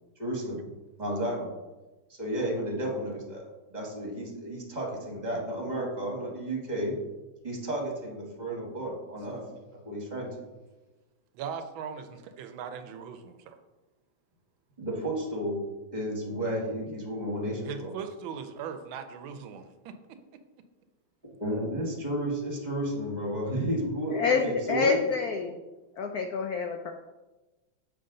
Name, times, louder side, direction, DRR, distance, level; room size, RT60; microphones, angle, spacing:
voice 1, 0.2-0.6 1.0-1.5 2.1-3.4 3.7-6.9 7.4-9.4 9.8-10.3 14.8-15.6 15.9-17.9 21.4-25.0, right 1 dB, 25° right, -2 dB, 1.4 m, -32 dB
voice 2, 11.3-13.6 17.6-20.4, right 7 dB, 80° right, 8 dB, 1.4 m, -39 dB
voice 3, 24.1-25.6 26.0-26.9, left 5 dB, 75° left, 4 dB, 0.8 m, -27 dB
6.9 x 5.2 x 3.8 m, 1.1 s
omnidirectional pair, 2.2 m